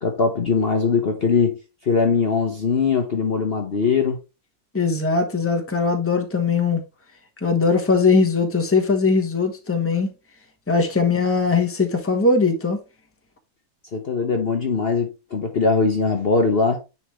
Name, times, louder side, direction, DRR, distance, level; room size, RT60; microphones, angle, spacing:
voice 1, 0.0-1.6 1.8-4.2 13.9-16.8, left 4 dB, 45° left, 1.1 m, -21 dB
voice 2, 4.7-6.8 7.4-10.1 10.7-12.8, left 4 dB, 10° left, 1.1 m, -20 dB
9.9 x 4.3 x 3.2 m
omnidirectional pair, 1.6 m